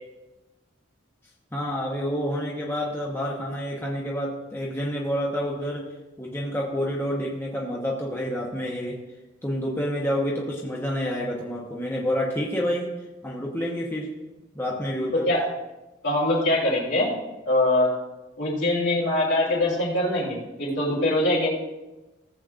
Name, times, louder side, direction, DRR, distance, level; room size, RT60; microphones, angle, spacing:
voice 1, 1.5-5.8 6.2-9.0 9.4-12.9 13.2-14.1 14.5-15.3, equal, 10° left, -3 dB, 1.0 m, -28 dB
voice 2, 16.0-17.1 17.5-17.9 18.4-21.5, left 1 dB, 65° left, -4 dB, 3.4 m, -23 dB
16.5 x 7.6 x 2.5 m, 1.1 s
head